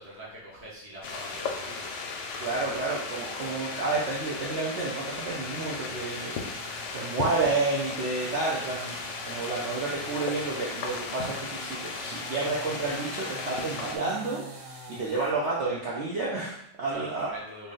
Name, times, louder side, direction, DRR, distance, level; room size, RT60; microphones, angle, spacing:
voice 1, 0.0-1.9 16.9-17.7, equal, 15° right, -6 dB, 0.4 m, -43 dB
sound 1, 1.0-14.0, left 4 dB, 70° left, 1.1 m, -36 dB
voice 2, 2.4-6.3 6.9-9.0 9.3-14.4 15.0-17.3, right 3 dB, 85° right, -5 dB, 0.6 m, -30 dB
sound 2, 5.1-15.4, right 2 dB, 70° right, 1.2 m, -46 dB
3.0 x 2.7 x 3.7 m, 0.74 s
omnidirectional pair, 2.0 m